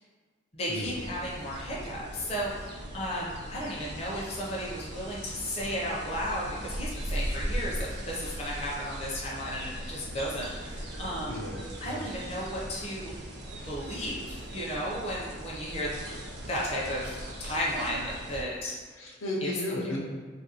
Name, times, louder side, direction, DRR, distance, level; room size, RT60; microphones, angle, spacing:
voice 1, 0.5-11.5 11.8-13.2 13.7-16.0 16.5-18.7 19.4-19.5, equal, 30° left, -5 dB, 0.5 m, -34 dB
sound 1, 0.8-18.4, right 1 dB, 55° right, 0.5 m, -39 dB
voice 2, 11.3-12.0 19.0-20.0, left 1 dB, 90° left, -3 dB, 0.6 m, -34 dB
2.9 x 2.5 x 2.7 m, 1.5 s
head